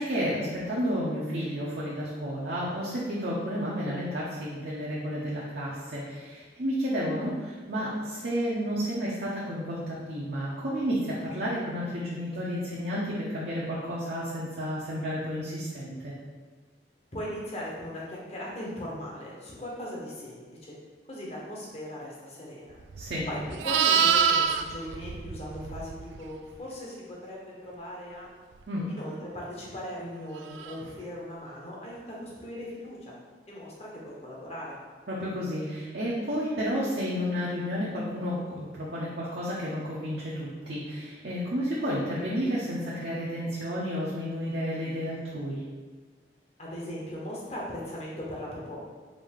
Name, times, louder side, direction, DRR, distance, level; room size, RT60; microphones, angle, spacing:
voice 1, 0.0-16.1 23.0-23.3 28.7-28.9 35.1-45.6, equal, 65° right, -7 dB, 0.7 m, -31 dB
voice 2, 17.1-20.7 21.1-22.8 23.2-28.3 28.9-33.1 33.5-34.8 46.6-48.8, equal, 35° left, -4 dB, 1.0 m, -39 dB
Livestock farm animals working animals, 22.9-26.2 30.6-30.8, right 7 dB, 90° right, 0.3 m, -26 dB
5.0 x 2.7 x 3.6 m, 1.5 s
head